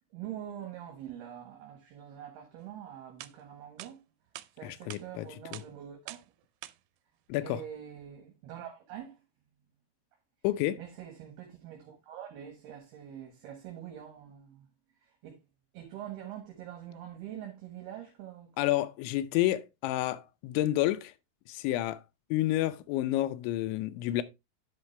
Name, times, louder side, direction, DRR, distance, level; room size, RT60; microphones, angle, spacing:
voice 1, 0.1-4.0 4.5-6.3 7.3-9.2 10.8-14.7 15.0-15.4 15.7-18.5, right 10 dB, 70° right, 3.2 m, -44 dB
sound 1, 2.7-2.8 3.2-3.3 3.8-3.9 4.4-4.5 4.9-5.0 5.5-5.7 6.1-6.3 6.6-6.7, right 16 dB, 90° right, 2.9 m, -44 dB
voice 2, 4.6-5.3 5.5-5.6 7.3-7.6 10.4-10.8 18.6-21.1 21.5-22.0 22.3-24.2, left 15 dB, 85° left, 3.1 m, -29 dB
10.5 x 5.2 x 3.2 m
omnidirectional pair, 5.2 m